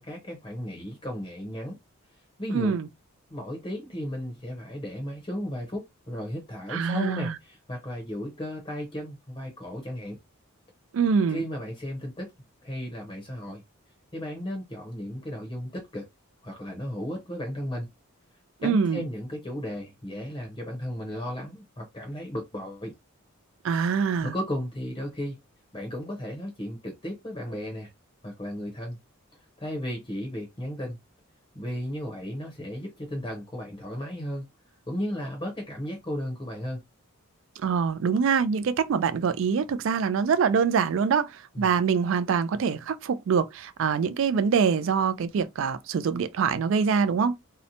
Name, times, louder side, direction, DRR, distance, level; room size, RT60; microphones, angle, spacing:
voice 1, 0.0-1.8 2.4-2.8 3.3-10.2 11.3-12.3 12.6-13.6 14.1-16.1 16.4-17.9 18.6-22.9 24.2-25.4 25.7-27.9 28.2-29.0 29.6-31.0 31.5-34.5 34.9-36.8 41.5-41.8, equal, 25° left, 0.7 m, -34 dB
voice 2, 2.5-2.9 6.7-7.3 10.9-11.4 18.6-19.0 23.6-24.3 37.6-47.4, right 6 dB, 65° right, 0.3 m, -24 dB
2.8 x 2.1 x 2.6 m
head